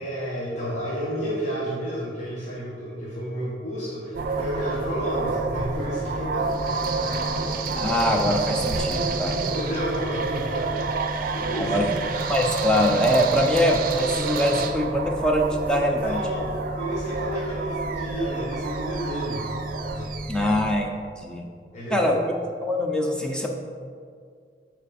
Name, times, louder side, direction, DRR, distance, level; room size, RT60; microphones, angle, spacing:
voice 1, 0.0-7.3 9.0-10.9 11.3-11.8 16.0-19.5 19.9-20.5 21.7-22.1, equal, 40° left, -7 dB, 1.2 m, -31 dB
sound 1, 4.1-20.8, right 3 dB, 50° right, 0.5 m, -28 dB
voice 2, 7.8-9.5 11.5-11.9 12.3-16.2 20.3-21.4 21.9-22.3 22.6-23.5, equal, 5° left, 1 dB, 0.5 m, -23 dB
7.8 x 4.4 x 4.2 m, 2.1 s
head